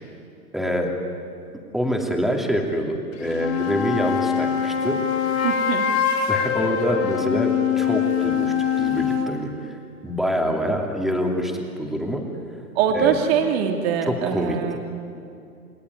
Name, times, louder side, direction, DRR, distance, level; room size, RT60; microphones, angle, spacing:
voice 1, 0.5-0.9 1.7-5.0 5.3-5.4 6.3-12.2 12.9-13.2 14.1-14.6, equal, ahead, 1 dB, 2.7 m, -26 dB
sound 1, 3.1-9.3, left 8 dB, 60° left, 4.1 m, -23 dB
voice 2, 5.4-5.8 12.7-14.8, right 7 dB, 40° right, 3 dB, 2.8 m, -22 dB
28.5 x 20.5 x 9.6 m, 2.6 s
hypercardioid pair, 140°, 46 cm